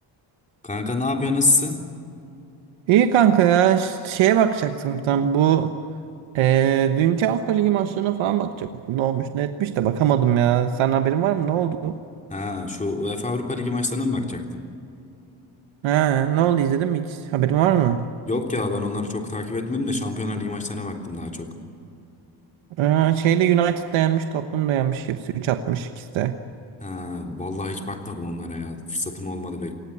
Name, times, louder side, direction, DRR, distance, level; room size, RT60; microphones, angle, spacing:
voice 1, 0.6-1.9 12.3-14.6 18.2-21.5 26.8-29.8, left 2 dB, 15° left, 2 dB, 3.4 m, -27 dB
voice 2, 2.9-5.8 6.3-12.0 15.8-18.1 22.8-26.3, right 10 dB, 80° right, 8 dB, 1.2 m, -21 dB
27.5 x 20.0 x 8.8 m, 2.6 s
cardioid pair, 130°, 47 cm